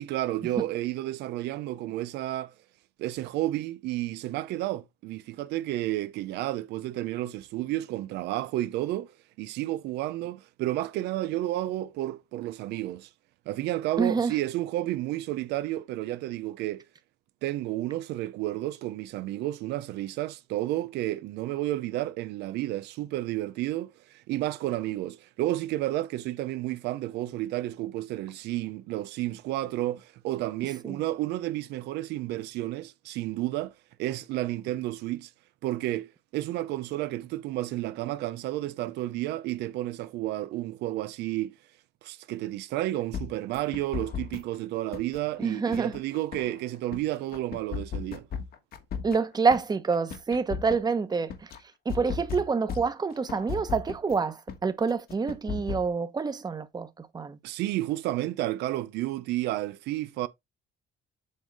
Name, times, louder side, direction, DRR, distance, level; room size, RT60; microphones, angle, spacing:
voice 1, 0.0-2.5 3.0-13.1 13.5-16.8 17.4-33.7 34.0-35.3 35.6-41.5 42.0-48.3 57.4-60.3, right 15 dB, 80° right, 0.6 m, -31 dB
voice 2, 14.0-14.3 30.8-31.0 45.4-45.9 49.0-51.5 51.8-57.4, right 5 dB, 25° right, 1.1 m, -27 dB
sound 1, 43.1-44.6 44.9-47.0 47.3-49.6 49.9-51.6 51.9-54.2 54.5-54.6 54.9-55.9, left 6 dB, 65° left, 1.6 m, -35 dB
7.6 x 3.8 x 4.6 m
cardioid pair, 110°, 17 cm